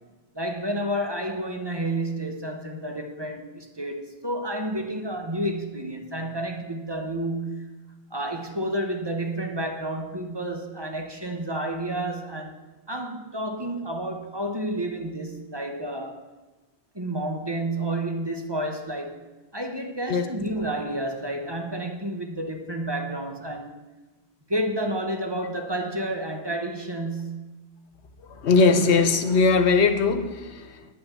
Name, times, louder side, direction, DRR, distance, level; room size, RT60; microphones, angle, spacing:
voice 1, 0.3-7.6 8.1-12.6 12.9-16.2 16.9-19.2 19.5-23.7 24.5-27.4, right 1 dB, 25° right, 1.0 m, -30 dB
voice 2, 28.3-30.9, left 4 dB, 90° left, 1.2 m, -20 dB
9.7 x 5.7 x 8.4 m
omnidirectional pair, 1.1 m